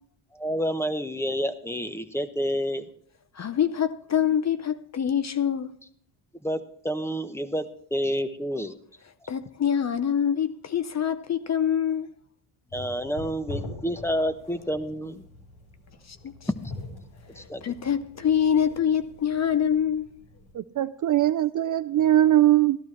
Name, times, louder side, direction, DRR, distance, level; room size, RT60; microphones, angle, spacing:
voice 1, 0.3-2.9 6.4-7.6 7.9-8.7 12.7-15.2 17.4-17.6, equal, 5° left, 0.9 m, -29 dB
voice 2, 3.4-5.7 9.3-12.1 16.1-16.3 17.6-20.1, left 8 dB, 35° left, 0.6 m, -25 dB
sound 1, 12.7-20.5, left 2 dB, 70° left, 5.2 m, -43 dB
voice 3, 20.5-22.8, right 13 dB, 45° right, 0.4 m, -21 dB
13.5 x 12.0 x 3.2 m
supercardioid pair, 80°, 49 cm